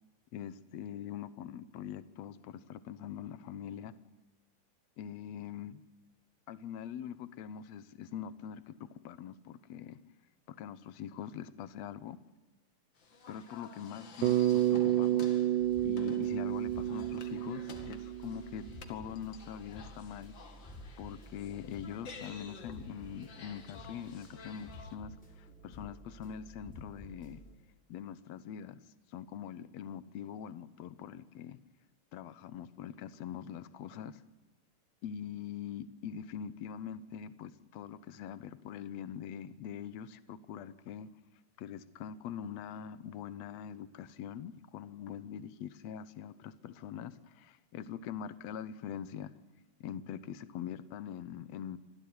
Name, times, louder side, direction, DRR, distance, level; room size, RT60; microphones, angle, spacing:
voice 1, 0.3-3.9 5.0-5.8 6.5-10.0 10.5-12.2 13.3-15.2 15.8-20.3 21.0-27.4 27.9-28.8 29.1-31.6 32.1-34.2 35.0-41.1 41.6-49.3 49.8-51.8, left 9 dB, 65° left, 15 dB, 1.8 m, -43 dB
sound 1, 13.0-25.0, left 5 dB, 40° left, 2.4 m, -53 dB
Bass guitar, 14.2-18.6, right 13 dB, 75° right, 2.3 m, -30 dB
sound 2, 15.6-27.5, right 1 dB, ahead, 6.0 m, -52 dB
25.0 x 15.5 x 9.6 m, 1.1 s
omnidirectional pair, 3.9 m